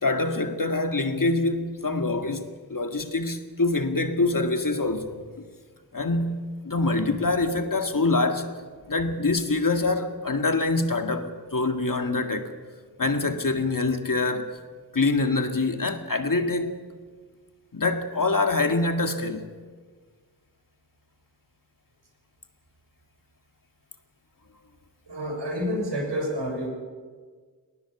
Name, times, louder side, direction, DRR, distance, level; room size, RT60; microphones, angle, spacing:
voice 1, 0.0-5.2 5.9-8.5 8.9-12.5 13.0-14.5 14.9-16.8 17.7-19.4, left 3 dB, 50° left, 2.0 m, -25 dB
voice 2, 25.1-26.7, equal, 90° right, 6.9 m, -29 dB
19.5 x 19.5 x 7.2 m
wide cardioid pair, 50°, 41 cm